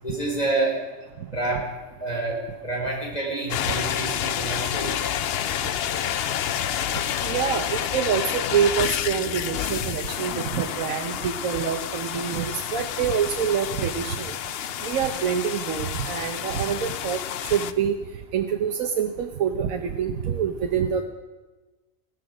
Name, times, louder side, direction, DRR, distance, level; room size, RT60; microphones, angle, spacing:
voice 1, 0.0-0.8 1.3-1.7 2.0-5.1, right 2 dB, 30° left, -1 dB, 3.9 m, -28 dB
sound 1, 3.5-17.7, left 10 dB, 60° left, 0.7 m, -29 dB
voice 2, 7.2-14.3 14.8-17.2 17.5-18.0 18.3-21.0, right 8 dB, 80° right, 5 dB, 1.2 m, -26 dB
16.0 x 13.5 x 4.9 m, 1.2 s
omnidirectional pair, 1.4 m